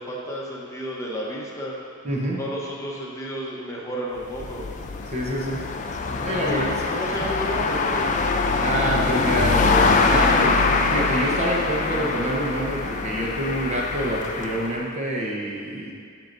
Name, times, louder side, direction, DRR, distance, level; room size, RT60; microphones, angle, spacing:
voice 1, 0.0-1.7 2.4-4.7 6.4-6.6 6.9-8.1, equal, 15° left, -4 dB, 0.8 m, -32 dB
voice 2, 2.0-2.4 5.1-5.7 6.1-6.8 7.1-7.3 8.6-15.9, right 1 dB, 30° right, -3 dB, 0.8 m, -27 dB
sound 1, 4.2-14.8, left 4 dB, 35° left, 0.4 m, -23 dB
12.5 x 4.6 x 2.6 m, 2.2 s
head